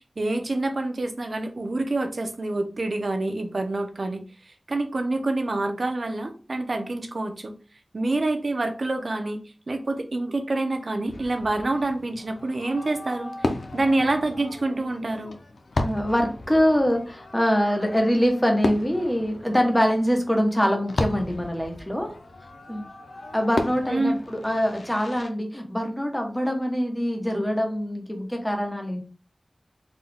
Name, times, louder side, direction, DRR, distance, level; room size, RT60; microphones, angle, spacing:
voice 1, 0.2-4.2 4.7-7.5 7.9-9.4 9.7-13.3 13.7-15.4 23.9-24.2, right 2 dB, 65° right, 5 dB, 0.7 m, -27 dB
Fireworks, 11.1-25.3, left 2 dB, 85° left, 0.5 m, -34 dB
voice 2, 15.8-22.2 22.7-22.9 23.3-29.0, equal, 10° left, 2 dB, 1.0 m, -24 dB
3.9 x 2.3 x 3.4 m, 0.36 s
wide cardioid pair, 55°, 0 cm